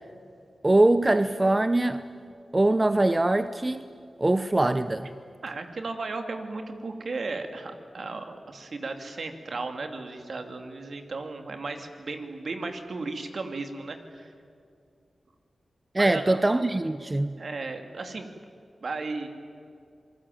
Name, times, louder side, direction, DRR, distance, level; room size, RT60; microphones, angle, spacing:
voice 1, 0.6-2.0 2.5-3.8 4.2-5.1 15.9-17.4, right 2 dB, 25° right, 11 dB, 0.8 m, -22 dB
voice 2, 5.4-14.3 16.0-16.4 17.4-18.3 18.8-19.3, right 3 dB, 65° right, 6 dB, 2.7 m, -35 dB
26.5 x 20.0 x 9.3 m, 2.3 s
cardioid pair, 60°, 0 cm